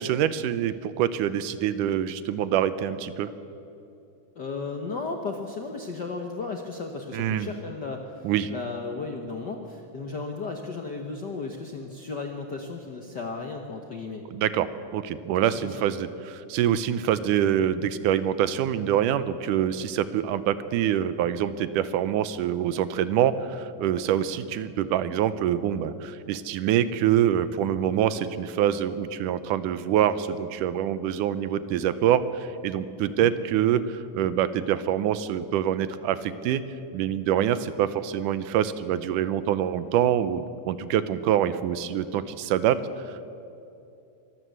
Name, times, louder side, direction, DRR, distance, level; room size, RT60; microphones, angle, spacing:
voice 1, 0.0-3.3 7.1-7.5 8.2-8.5 14.3-36.6 36.9-42.8 43.1-43.3, right 10 dB, 80° right, 14 dB, 2.2 m, -25 dB
voice 2, 4.3-14.2 15.4-15.8 33.2-33.3, left 4 dB, 75° left, 3 dB, 0.9 m, -35 dB
24.0 x 14.0 x 8.0 m, 2.7 s
omnidirectional pair, 3.8 m